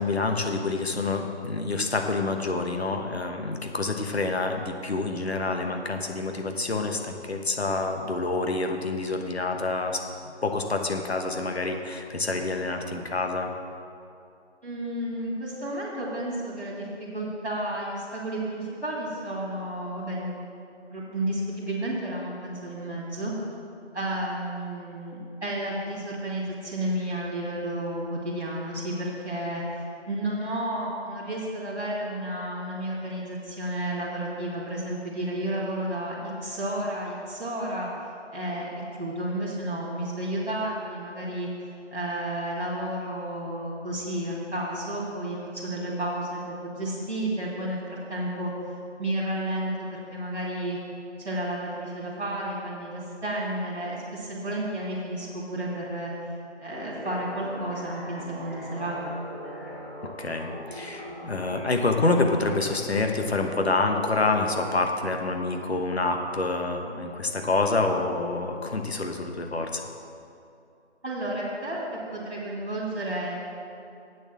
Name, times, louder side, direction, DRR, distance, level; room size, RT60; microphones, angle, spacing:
voice 1, 0.0-10.0 10.4-13.5 60.2-69.8, left 3 dB, 65° left, 4 dB, 1.2 m, -27 dB
voice 2, 14.6-20.3 20.9-23.3 23.9-37.9 38.3-48.5 49.0-50.8 51.2-56.1 56.6-59.2 71.0-73.4, right 1 dB, 65° right, -6 dB, 2.8 m, -32 dB
sound 1, 56.7-64.7, equal, 15° right, 1.2 m, -40 dB
8.4 x 7.3 x 7.3 m, 2.6 s
figure-of-eight pair, 165°, 35 cm